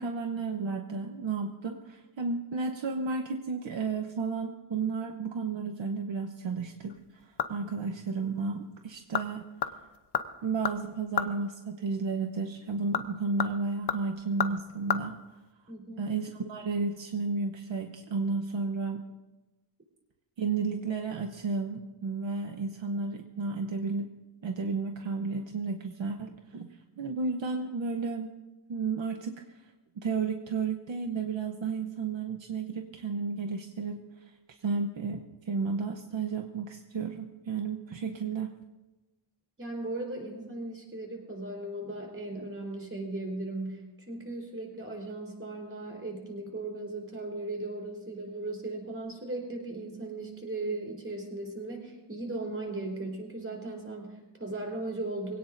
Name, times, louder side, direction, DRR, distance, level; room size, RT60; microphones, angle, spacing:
voice 1, 0.0-9.4 10.4-15.2 16.0-19.0 20.4-24.1 24.4-26.7 27.0-28.3 28.7-29.6 30.0-34.3 34.6-38.5, right 4 dB, 65° right, 4 dB, 1.0 m, -32 dB
sound 1, 6.9-7.8 8.1-8.2 8.9-9.3 9.6-11.4 12.7-15.0 15.3-15.4, left 8 dB, 55° left, 0.9 m, -33 dB
voice 2, 15.7-16.1 39.6-55.4, right 2 dB, 25° right, 1 dB, 4.3 m, -37 dB
23.5 x 17.5 x 2.6 m, 1.1 s
wide cardioid pair, 145°, 49 cm